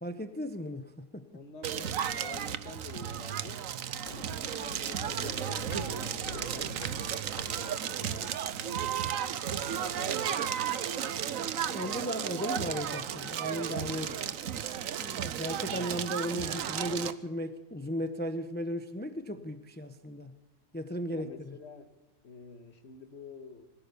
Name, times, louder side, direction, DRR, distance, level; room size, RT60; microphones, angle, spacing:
voice 1, 0.0-1.2 11.7-14.1 15.0-20.3 20.7-21.5, equal, 10° left, 9 dB, 0.8 m, -36 dB
voice 2, 1.3-3.6 4.4-6.9 7.2-9.1 9.6-11.2 14.0-14.2 15.1-15.4 19.3-19.5 21.1-21.9 22.2-23.6, left 3 dB, 55° left, 7 dB, 2.0 m, -48 dB
Crackle, 1.6-17.1, right 9 dB, 85° right, 1.2 m, -34 dB
Walk footsteps, 3.6-8.2 8.5-8.6, left 3 dB, 70° left, 2.3 m, -47 dB
24.0 x 15.5 x 7.0 m, 1.1 s
omnidirectional pair, 1.4 m